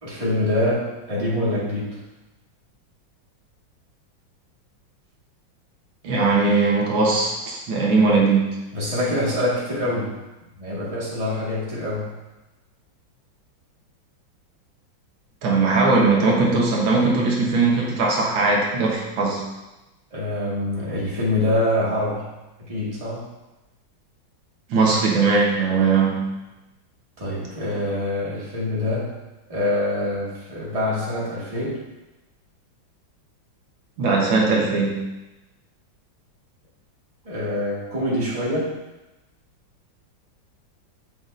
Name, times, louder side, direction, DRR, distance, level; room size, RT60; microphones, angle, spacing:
voice 1, 0.0-2.0 8.7-10.1 10.6-12.1 20.1-22.3 22.7-23.3 27.2-29.1 29.5-31.8 37.2-38.7, left 1 dB, 20° right, -7 dB, 1.7 m, -25 dB
voice 2, 6.0-8.5 15.4-19.4 24.7-26.3 34.0-35.0, right 3 dB, 85° right, -2 dB, 1.9 m, -19 dB
7.9 x 5.7 x 2.6 m, 1.0 s
omnidirectional pair, 2.2 m